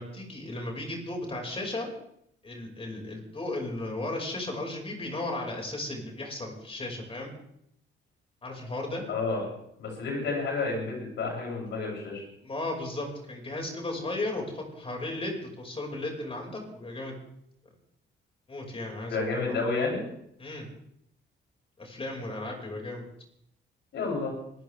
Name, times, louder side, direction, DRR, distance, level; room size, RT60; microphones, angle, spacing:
voice 1, 0.0-1.9 2.4-7.3 8.4-9.0 12.4-17.2 18.5-19.6 20.4-20.7 21.8-23.1, left 2 dB, 30° left, 0 dB, 5.7 m, -35 dB
voice 2, 9.1-9.4 9.8-12.2 19.1-20.0 23.9-24.3, left 3 dB, 70° left, -2 dB, 8.0 m, -30 dB
25.5 x 14.5 x 3.6 m, 0.75 s
cardioid pair, 90°, 20 cm